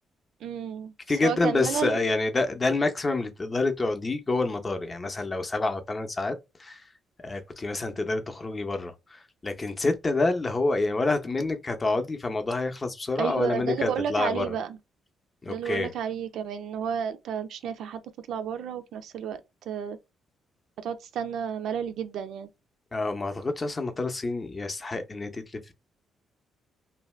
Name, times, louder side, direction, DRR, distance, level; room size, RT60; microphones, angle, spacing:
voice 1, 0.4-0.9 1.2-2.0 13.2-14.7 15.5-18.0 18.3-19.4 19.7-20.0 20.8-22.5, right 8 dB, 75° right, 0.5 m, -31 dB
voice 2, 1.1-6.9 7.2-14.6 15.4-15.9 22.9-25.7, left 3 dB, 30° left, 0.6 m, -28 dB
2.6 x 2.2 x 3.1 m
cardioid pair, 90°, 0 cm